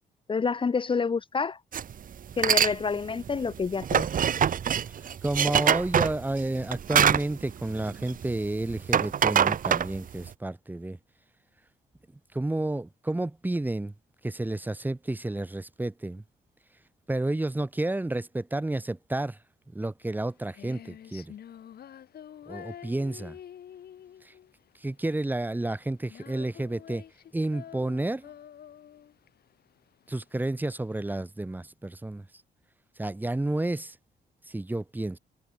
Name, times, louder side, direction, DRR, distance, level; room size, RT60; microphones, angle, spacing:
voice 1, 0.3-1.6 2.4-4.1, left 5 dB, 30° left, 1.7 m, -28 dB
sound 1, 1.7-1.9 2.3-2.7 3.1-8.4 8.7-10.3, right 8 dB, 50° right, 2.3 m, -24 dB
voice 2, 5.0-11.0 12.3-13.9 14.2-16.2 17.1-19.4 19.7-21.3 22.5-23.4 24.2-24.3 24.8-27.0 27.3-28.3 30.1-32.3 33.0-34.0 34.5-35.2, right 2 dB, 10° right, 2.8 m, -31 dB
Female singing, 20.0-31.0, left 9 dB, 60° left, 7.6 m, -48 dB
cardioid pair, 145°, 18 cm